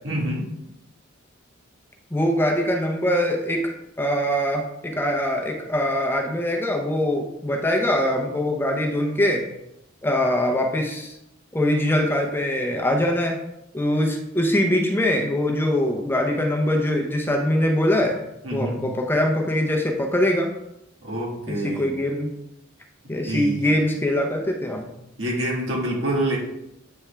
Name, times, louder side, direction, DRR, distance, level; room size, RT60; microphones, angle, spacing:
voice 1, 0.0-0.5 18.4-18.8 21.0-22.0 23.2-23.6 25.2-26.4, right 1 dB, 70° right, -4 dB, 2.1 m, -26 dB
voice 2, 2.1-3.6 4.0-9.4 10.0-11.1 11.5-13.4 13.7-18.2 18.5-20.5 21.5-22.3 23.1-24.9, left 1 dB, 10° left, 1 dB, 0.7 m, -23 dB
8.5 x 3.5 x 3.3 m, 0.86 s
head